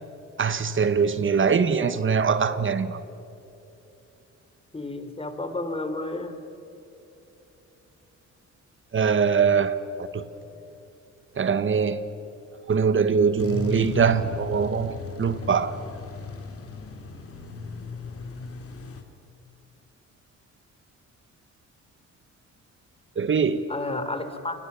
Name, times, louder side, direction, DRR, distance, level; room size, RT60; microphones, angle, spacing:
voice 1, 0.4-3.0 8.9-10.2 11.4-12.0 12.7-15.7 23.2-23.6, right 6 dB, 40° right, 1.4 m, -23 dB
voice 2, 4.7-6.3 23.7-24.6, left 2 dB, 20° left, 3.4 m, -31 dB
sound 1, 13.4-19.0, left 4 dB, 50° left, 3.3 m, -36 dB
29.5 x 24.5 x 7.0 m
cardioid pair, 90°, 30 cm